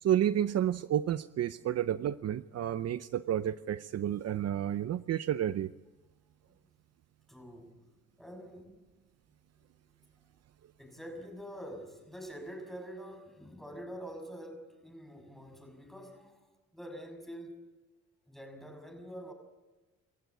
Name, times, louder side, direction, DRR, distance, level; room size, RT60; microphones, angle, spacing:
voice 1, 0.0-5.7, right 11 dB, 55° right, 0.7 m, -30 dB
voice 2, 7.3-7.8 8.2-8.8 10.8-16.5 16.7-17.6 18.3-19.3, equal, ahead, 6.3 m, -46 dB
27.5 x 14.5 x 8.5 m
cardioid pair, 90°, 30 cm